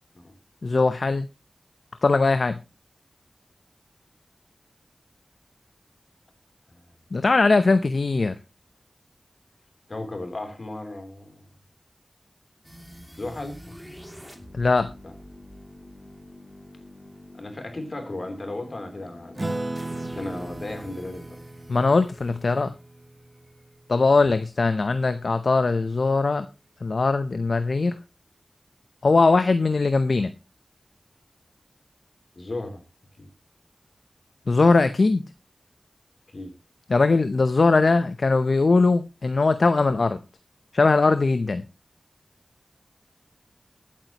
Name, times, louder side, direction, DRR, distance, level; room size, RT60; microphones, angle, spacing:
voice 1, 0.6-1.3 2.0-2.6 7.1-8.4 14.5-14.9 21.7-22.7 23.9-26.5 26.8-28.0 29.0-30.3 34.5-35.2 36.9-40.2 40.7-41.6, left 3 dB, 70° left, 11 dB, 0.6 m, -20 dB
voice 2, 9.9-11.4 13.2-13.9 15.0-15.1 17.3-19.6 20.1-21.4 32.3-32.8 33.2-33.3 36.3-36.5, left 2 dB, 55° left, 6 dB, 3.2 m, -35 dB
sound 1, 12.6-23.6, equal, ahead, 2.6 m, -47 dB
Acoustic guitar / Strum, 19.4-24.2, right 2 dB, 35° right, 1.4 m, -36 dB
21.5 x 8.7 x 2.9 m, 0.27 s
wide cardioid pair, 60°, 0 cm